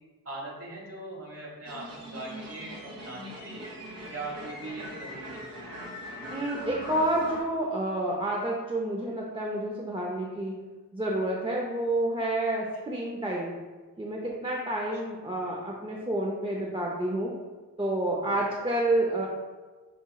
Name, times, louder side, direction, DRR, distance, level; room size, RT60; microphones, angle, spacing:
voice 1, 0.2-3.7 4.1-5.5 18.2-18.4, right 2 dB, 40° right, -3 dB, 1.3 m, -40 dB
sound 1, 1.7-7.4, equal, 60° right, 1.2 m, -41 dB
voice 2, 6.3-10.6 10.9-13.5 14.0-17.3 17.8-19.3, right 1 dB, 15° right, -2 dB, 0.4 m, -29 dB
7.7 x 3.0 x 2.3 m, 1.3 s
wide cardioid pair, 130°, 37 cm